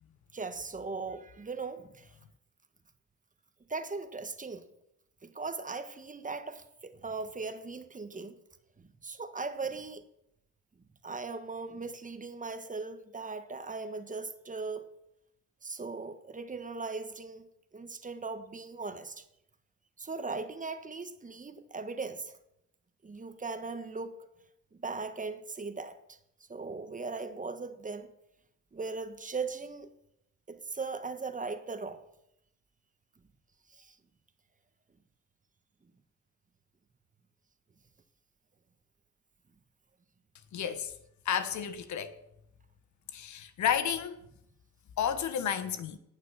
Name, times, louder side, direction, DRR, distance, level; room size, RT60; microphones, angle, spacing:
voice 1, 0.3-2.1 3.7-4.6 5.2-8.3 8.8-10.0 11.0-14.9 15.6-17.5 17.7-19.2 20.0-22.4 23.0-24.2 24.7-26.2 26.5-28.1 28.7-29.9 30.5-32.0 33.8-34.0, right 4 dB, 25° right, 1.5 m, -39 dB
voice 2, 40.5-40.9 41.2-42.2 43.1-44.2 45.0-46.0, left 8 dB, 70° left, 1.2 m, -31 dB
18.5 x 6.7 x 6.4 m
cardioid pair, 90°, 30 cm